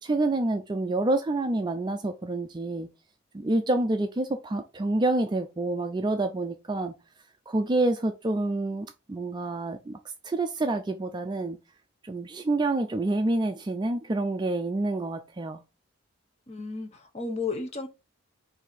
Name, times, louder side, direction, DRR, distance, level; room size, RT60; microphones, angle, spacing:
voice 1, 0.0-2.9 3.3-6.9 7.5-10.0 10.2-11.6 12.0-15.6, right 2 dB, 20° right, 0.3 m, -27 dB
voice 2, 16.5-17.9, left 4 dB, 30° left, 0.8 m, -33 dB
4.6 x 2.7 x 4.0 m
head